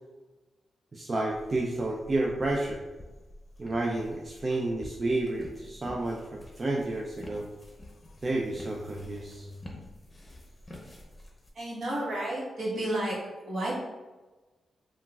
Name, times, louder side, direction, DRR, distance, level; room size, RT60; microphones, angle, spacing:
voice 1, 0.9-2.8 3.6-7.5 8.2-9.5, right 2 dB, 40° right, -1 dB, 0.4 m, -30 dB
sound 1, 1.3-11.5, left 1 dB, 30° left, 0.7 m, -49 dB
sound 2, 6.9-10.0, left 2 dB, 70° left, 0.5 m, -50 dB
voice 2, 11.5-13.2 13.4-13.7, right 1 dB, 70° right, -6 dB, 1.2 m, -31 dB
3.7 x 2.3 x 2.3 m, 1.2 s
cardioid pair, 55°, 0 cm